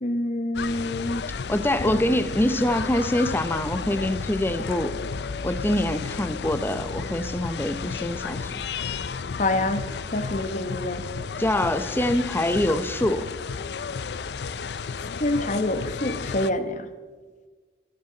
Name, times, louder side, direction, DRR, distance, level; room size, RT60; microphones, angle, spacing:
voice 1, 0.0-1.2 1.9-2.0 9.4-9.8 10.1-11.0 15.2-16.9, left 1 dB, 45° left, 9 dB, 1.1 m, -26 dB
sound 1, 0.5-16.5, left 5 dB, 65° left, 0.5 m, -33 dB
voice 2, 1.5-4.9 5.4-8.5 11.4-13.3, left 1 dB, 10° left, 11 dB, 0.6 m, -25 dB
25.0 x 11.5 x 3.9 m, 1.4 s
head